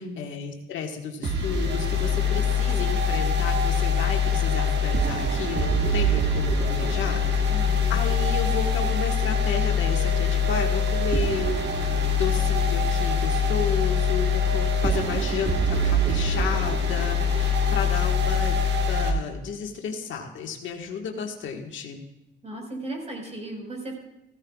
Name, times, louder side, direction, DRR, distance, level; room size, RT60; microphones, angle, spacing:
voice 1, 0.0-11.9 12.2-18.6 18.9-22.0, left 6 dB, 75° left, 2 dB, 1.6 m, -32 dB
sound 1, 1.2-19.1, left 3 dB, 60° right, 1.6 m, -23 dB
voice 2, 7.5-8.0 22.4-23.9, right 1 dB, 35° right, 0 dB, 4.9 m, -36 dB
16.5 x 15.5 x 2.4 m, 0.89 s
cardioid pair, 90°, 20 cm